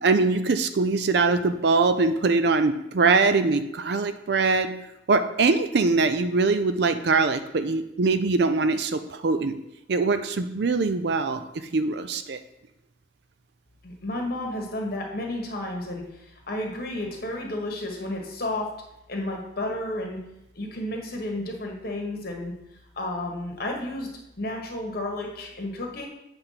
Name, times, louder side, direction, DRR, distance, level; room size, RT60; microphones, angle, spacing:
voice 1, 0.0-4.7 5.1-9.5 9.9-11.4 11.7-12.4, right 3 dB, 55° right, 10 dB, 0.4 m, -22 dB
voice 2, 13.8-18.7 19.1-20.2 20.5-22.5 23.0-24.1 24.4-26.1, left 1 dB, 50° left, 1 dB, 1.4 m, -32 dB
7.9 x 3.5 x 5.6 m, 0.86 s
head